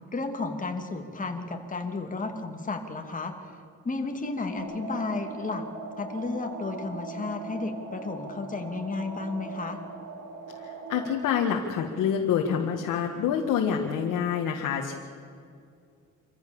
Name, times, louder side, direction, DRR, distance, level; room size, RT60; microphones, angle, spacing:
voice 1, 0.1-3.3 3.8-5.6 6.0-9.8, left 3 dB, 25° left, 4 dB, 2.6 m, -32 dB
sound 1, 4.6-11.1, right 4 dB, 75° right, 3.0 m, -40 dB
voice 2, 10.6-15.0, left 8 dB, 80° left, 1 dB, 1.8 m, -27 dB
26.0 x 15.0 x 7.2 m, 2.3 s
cardioid pair, 105°, 31 cm